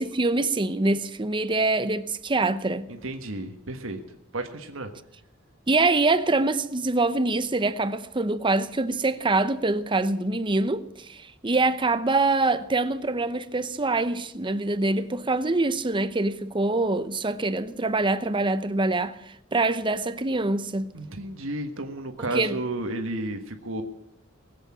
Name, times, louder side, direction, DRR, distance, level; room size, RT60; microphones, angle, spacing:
voice 1, 0.0-2.8 5.7-20.9 22.2-22.6, right 2 dB, 25° right, 0.8 m, -25 dB
voice 2, 2.9-4.0 4.3-4.9 20.9-23.8, right 2 dB, 80° right, 1.5 m, -32 dB
20.5 x 8.2 x 8.7 m
head